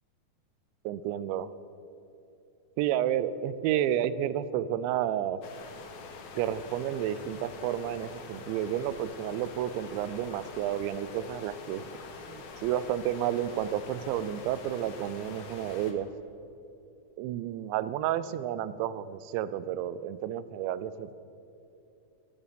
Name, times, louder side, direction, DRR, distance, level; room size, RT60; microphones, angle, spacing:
voice 1, 0.8-1.5 2.8-5.4 6.3-11.9 12.3-16.1 17.2-21.1, right 11 dB, 85° right, 15 dB, 2.9 m, -31 dB
sound 1, 5.4-15.9, left 4 dB, 70° left, 1.8 m, -45 dB
17.0 x 14.0 x 5.2 m, 2.8 s
omnidirectional pair, 5.1 m